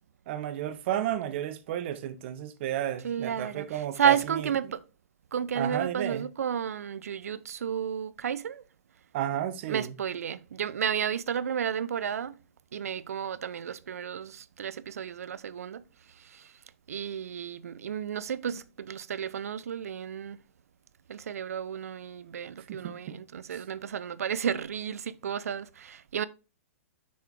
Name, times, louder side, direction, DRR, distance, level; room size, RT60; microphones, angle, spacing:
voice 1, 0.3-4.5 5.5-6.3 9.1-9.9 22.7-23.2 23.5-23.6, right 11 dB, 50° right, 0.8 m, -32 dB
voice 2, 3.0-4.8 5.3-8.6 9.7-12.3 12.7-15.8 16.2-16.5 16.9-20.4 21.1-26.2, right 8 dB, 80° right, 0.4 m, -32 dB
6.2 x 4.5 x 3.4 m
hypercardioid pair, 120°, 8 cm